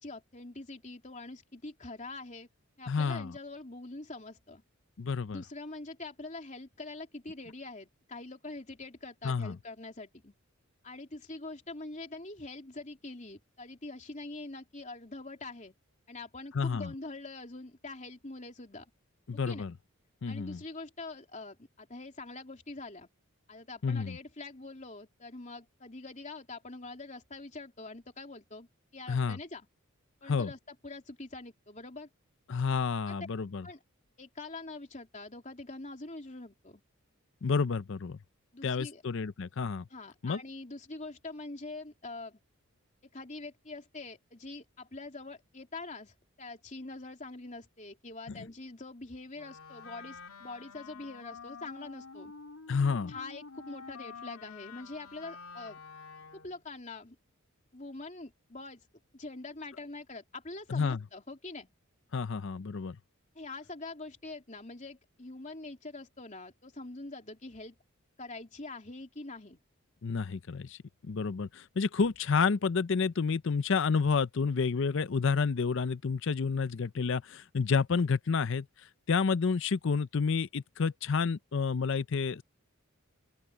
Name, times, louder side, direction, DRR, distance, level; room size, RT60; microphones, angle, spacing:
voice 1, 0.0-2.5 2.8-4.6 5.3-10.3 10.8-15.7 16.1-18.9 19.3-19.7 20.3-23.1 23.5-28.7 28.9-29.7 30.2-32.1 33.1-33.2 33.6-33.8 34.2-36.8 38.5-39.0 39.9-42.4 43.1-52.3 53.1-55.8 56.3-57.2 57.7-58.9 59.1-61.7 63.3-67.8 68.2-69.6, left 2 dB, 35° left, 3.2 m, -44 dB
voice 2, 2.9-3.3 5.0-5.4 9.2-9.6 16.5-16.9 19.3-19.7 20.2-20.6 23.8-24.2 29.1-29.4 30.3-30.5 32.5-33.7 37.4-38.2 38.6-39.9 40.2-40.4 48.4-48.5 52.7-53.1 60.7-61.0 62.1-63.0 70.0-70.8 71.0-78.7 79.1-82.4, left 5 dB, 55° left, 0.5 m, -30 dB
Wind instrument woodwind instrument, 49.3-56.6, left 5 dB, 85° left, 2.4 m, -48 dB
open air
head